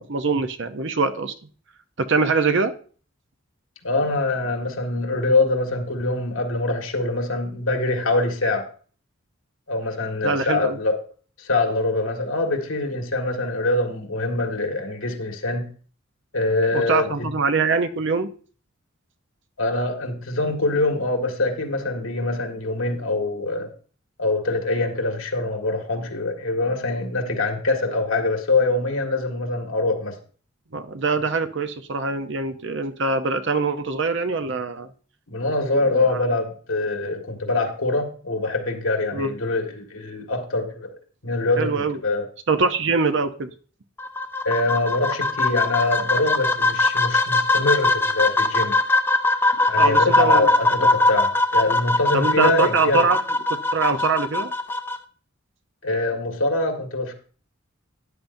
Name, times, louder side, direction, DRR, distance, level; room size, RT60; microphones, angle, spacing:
voice 1, 0.0-1.3 2.0-2.7 10.2-10.8 16.7-18.3 30.7-34.9 35.9-36.2 39.1-39.4 41.6-42.0 42.5-43.5 49.8-50.5 50.8-50.9 52.1-53.2 53.5-54.5, right 4 dB, 60° right, 9 dB, 0.8 m, -23 dB
voice 2, 3.8-8.6 9.7-11.0 11.4-15.7 16.3-17.3 19.6-23.7 24.2-30.1 35.3-40.9 41.2-42.2 44.4-48.7 49.7-53.1 55.8-57.1, left 2 dB, 85° left, 4 dB, 1.9 m, -24 dB
sound 1, 44.0-55.0, left 2 dB, 10° left, 0.5 m, -21 dB
12.5 x 10.5 x 2.7 m, 0.42 s
head